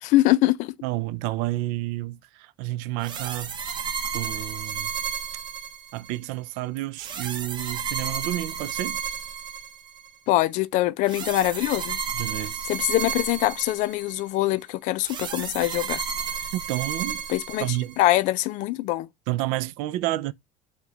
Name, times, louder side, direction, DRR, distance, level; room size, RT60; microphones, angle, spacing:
voice 1, 0.0-0.7 10.3-12.0 12.7-16.0 17.3-19.1, left 16 dB, 65° left, 0.4 m, -23 dB
voice 2, 0.8-3.5 4.1-4.9 5.9-9.0 12.1-12.7 16.5-17.3 17.6-18.0 19.3-20.3, right 16 dB, 85° right, 0.4 m, -30 dB
sound 1, 3.0-6.2 7.0-10.1 11.1-14.2 15.0-18.1, right 7 dB, 35° right, 0.8 m, -32 dB
4.8 x 2.2 x 3.9 m
cardioid pair, 145°, 13 cm